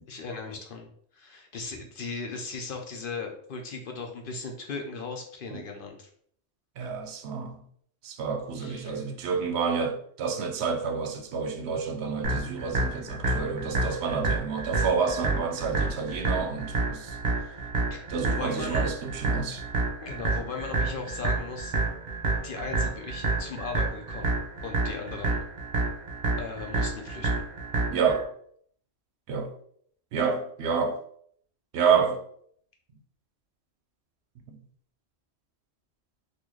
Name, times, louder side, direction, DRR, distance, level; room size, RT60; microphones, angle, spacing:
voice 1, 0.1-6.1 8.6-9.0 17.9-18.8 20.0-21.7 22.4-24.3 24.6-25.4 26.4-27.5, left 4 dB, 60° left, 0.7 m, -37 dB
voice 2, 6.8-7.6 8.0-17.2 18.1-19.6 27.9-28.3 29.3-29.5 30.1-31.0 31.7-32.2, right 6 dB, 70° right, 0.8 m, -29 dB
sound 1, 12.2-28.2, right 3 dB, 45° right, 0.9 m, -29 dB
3.7 x 2.4 x 3.0 m
omnidirectional pair, 1.2 m